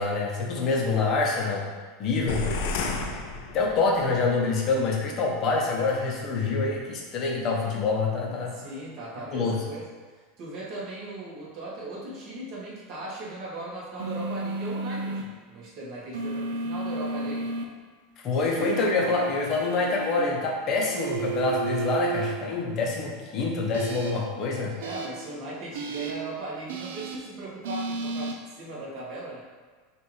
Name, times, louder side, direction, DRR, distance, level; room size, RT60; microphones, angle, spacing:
voice 1, 0.0-1.6 2.0-2.6 3.5-8.5 9.3-9.6 18.2-24.8, left 3 dB, 35° left, -1 dB, 0.7 m, -26 dB
sound 1, 2.3-4.1, left 3 dB, 60° left, 0.4 m, -31 dB
voice 2, 8.2-17.5 18.4-18.5 24.7-29.4, right 2 dB, 35° right, -6 dB, 1.3 m, -38 dB
sound 2, 14.0-15.2 16.1-17.6 18.6-20.2 21.0-22.3 23.7-24.1 24.8-25.1 25.7-26.1 26.7-27.2 27.6-28.3, right 3 dB, 85° right, 0.5 m, -32 dB
5.4 x 2.5 x 3.2 m, 1.5 s
supercardioid pair, 160°, 0 cm